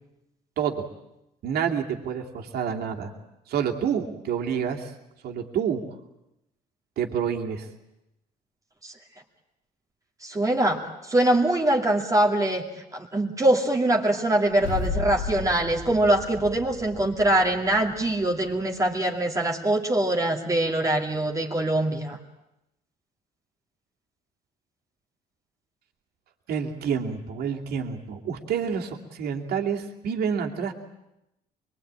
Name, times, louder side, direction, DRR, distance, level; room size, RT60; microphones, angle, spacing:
voice 1, 1.4-3.1 3.5-4.9 5.2-5.8 7.0-7.7 26.5-30.7, right 7 dB, 70° right, 2 dB, 2.7 m, -28 dB
voice 2, 10.2-12.6 12.9-22.2, right 1 dB, 20° right, 0 dB, 2.4 m, -23 dB
sound 1, 14.5-18.8, left 3 dB, 85° left, 3.5 m, -34 dB
24.5 x 22.5 x 8.9 m, 0.88 s
cardioid pair, 110°, 17 cm